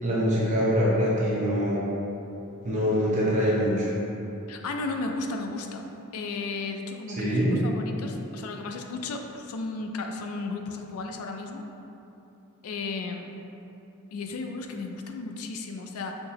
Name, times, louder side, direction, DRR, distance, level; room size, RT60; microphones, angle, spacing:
voice 1, 0.0-1.8 2.6-3.9 7.2-7.5, equal, 35° right, -7 dB, 0.7 m, -24 dB
voice 2, 4.5-5.9 6.1-11.6 12.6-13.3 14.1-16.2, left 3 dB, 75° left, 4 dB, 0.4 m, -34 dB
5.7 x 2.8 x 2.8 m, 2.9 s
head